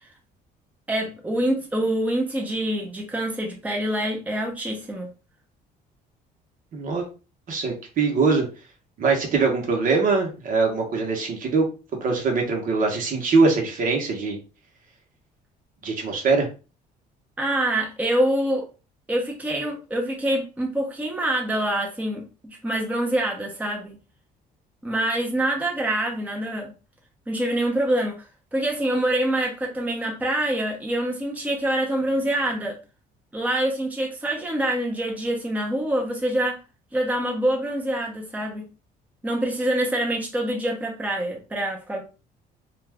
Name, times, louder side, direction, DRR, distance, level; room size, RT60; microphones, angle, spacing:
voice 1, 0.9-5.1 17.4-18.7 19.1-24.0 24.8-26.7 27.3-28.1 28.5-32.8 33.3-36.6 36.9-38.7 39.2-42.0, right 1 dB, 10° right, 0 dB, 0.8 m, -25 dB
voice 2, 6.7-7.0 7.5-8.5 9.0-11.7 12.0-14.4 15.8-16.5, right 4 dB, 55° right, 2 dB, 1.0 m, -22 dB
2.5 x 2.4 x 3.3 m, 0.32 s
cardioid pair, 110°, 17 cm